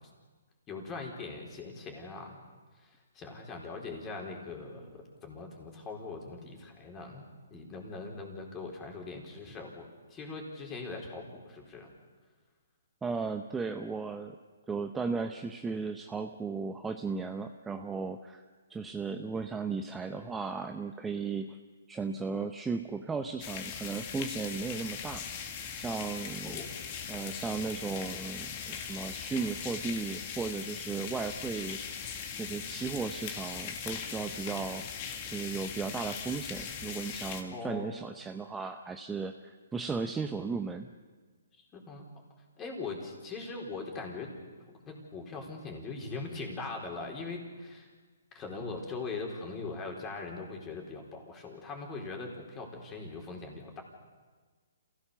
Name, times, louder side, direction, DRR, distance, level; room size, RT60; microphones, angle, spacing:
voice 1, 0.7-2.4 2.7-11.9 26.4-26.7 37.5-38.0 41.6-42.0 42.6-44.3 44.7-47.9 48.3-53.8, left 3 dB, 15° left, 1 dB, 4.3 m, -41 dB
voice 2, 13.0-14.4 14.7-18.4 18.7-21.6 21.9-25.2 25.8-26.6 27.1-31.8 32.4-34.8 35.3-40.9, right 4 dB, 10° right, 5 dB, 0.8 m, -35 dB
sound 1, 23.4-37.4, left 7 dB, 35° left, 2.4 m, -40 dB
27.5 x 16.5 x 7.0 m, 1.4 s
hypercardioid pair, 150°, 0 cm